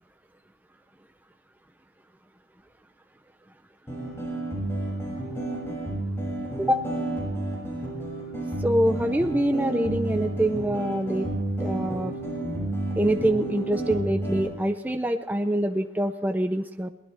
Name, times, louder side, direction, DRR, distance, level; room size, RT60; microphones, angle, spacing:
sound 1, 3.9-14.5, right 1 dB, 15° left, 6.3 m, -31 dB
voice 1, 8.6-11.3 11.6-12.2 13.0-16.9, right 1 dB, 10° right, 7 dB, 0.5 m, -25 dB
22.5 x 18.5 x 3.4 m, 1.0 s
head